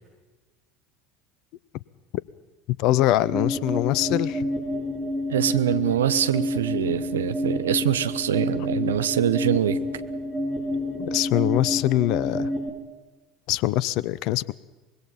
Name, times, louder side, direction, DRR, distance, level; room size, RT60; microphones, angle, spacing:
voice 1, 2.8-4.5 11.0-12.5 13.5-14.5, left 15 dB, 55° left, 21 dB, 0.8 m, -23 dB
sound 1, 3.3-12.7, left 1 dB, 5° right, 5.3 m, -29 dB
voice 2, 5.3-9.8, right 10 dB, 75° right, 13 dB, 1.0 m, -24 dB
25.0 x 21.5 x 5.8 m, 1.2 s
figure-of-eight pair, 70°, 0 cm